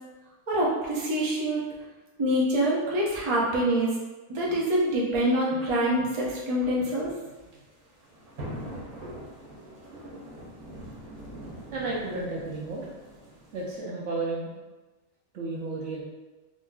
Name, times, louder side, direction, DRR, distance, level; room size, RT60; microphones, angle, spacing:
voice 1, 0.5-1.6 2.2-3.9 4.3-7.1, right 1 dB, 35° right, -5 dB, 0.5 m, -25 dB
sound 1, 7.2-13.8, equal, 85° right, 1.2 m, -43 dB
voice 2, 11.7-12.9 13.5-14.5 15.3-16.0, right 3 dB, 65° right, -4 dB, 0.8 m, -32 dB
3.9 x 2.7 x 2.2 m, 1.2 s
omnidirectional pair, 1.5 m